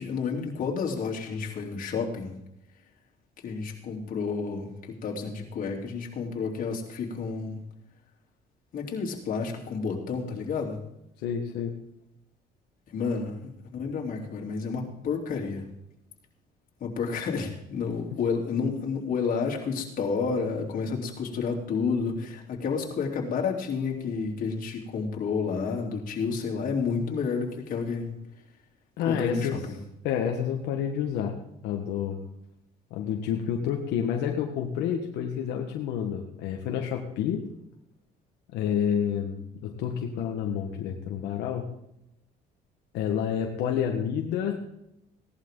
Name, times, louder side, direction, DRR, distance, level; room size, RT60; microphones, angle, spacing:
voice 1, 0.0-2.3 3.4-4.7 5.0-7.6 8.7-10.8 12.9-15.6 16.8-28.2 29.1-29.8, left 5 dB, 55° left, 0 dB, 3.4 m, -30 dB
voice 2, 11.2-11.7 29.0-29.6 30.0-31.3 31.6-32.2 32.9-37.4 38.5-41.6 42.9-44.6, left 8 dB, 85° left, 2 dB, 1.4 m, -29 dB
17.0 x 11.5 x 3.9 m, 0.84 s
cardioid pair, 110°, 17 cm